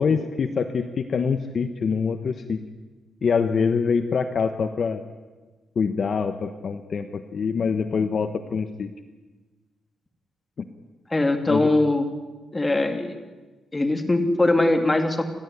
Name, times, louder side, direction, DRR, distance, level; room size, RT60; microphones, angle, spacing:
voice 1, 0.0-2.6 3.2-5.0 5.8-8.9 11.5-11.7, left 5 dB, 45° left, 8 dB, 1.1 m, -25 dB
voice 2, 11.1-12.1 12.5-13.1 13.7-15.2, left 2 dB, 15° left, 5 dB, 2.6 m, -21 dB
30.0 x 13.0 x 9.6 m, 1.3 s
cardioid pair, 125°, 0 cm